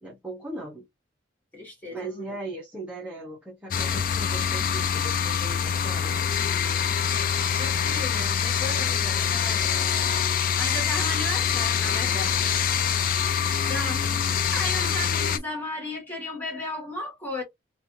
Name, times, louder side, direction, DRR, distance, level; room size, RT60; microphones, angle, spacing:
voice 1, 0.0-0.9 1.9-6.2, right 2 dB, 5° right, 0.7 m, -38 dB
voice 2, 1.5-2.4 7.6-9.7 10.6-12.5 13.7-17.4, left 1 dB, 10° left, 1.2 m, -35 dB
sound 1, 3.7-15.4, left 8 dB, 45° left, 0.4 m, -25 dB
3.1 x 2.5 x 2.6 m
head